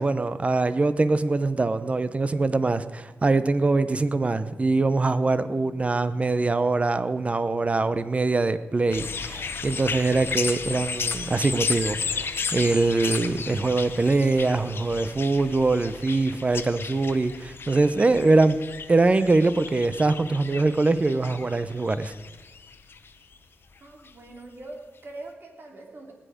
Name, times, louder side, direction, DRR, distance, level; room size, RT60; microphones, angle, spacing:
voice 1, 0.0-18.6 18.9-22.1, right 3 dB, 30° right, 0.8 m, -23 dB
sound 1, 8.9-23.4 24.1-24.2, left 5 dB, 60° left, 1.0 m, -34 dB
voice 2, 23.8-26.1, right 2 dB, 55° right, 3.0 m, -43 dB
18.5 x 10.0 x 5.2 m
wide cardioid pair, 90°, 4 cm